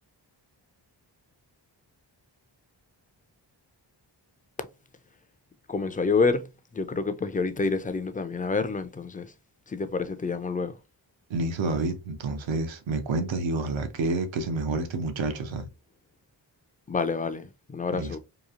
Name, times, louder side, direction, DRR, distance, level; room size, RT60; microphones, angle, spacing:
voice 1, 5.7-6.5 6.7-9.3 9.7-10.8 16.9-18.2, left 4 dB, 20° left, 0.3 m, -28 dB
voice 2, 11.3-15.7 17.9-18.2, right 3 dB, 75° right, 0.7 m, -29 dB
2.9 x 2.4 x 2.4 m
cardioid pair, 50°, 45 cm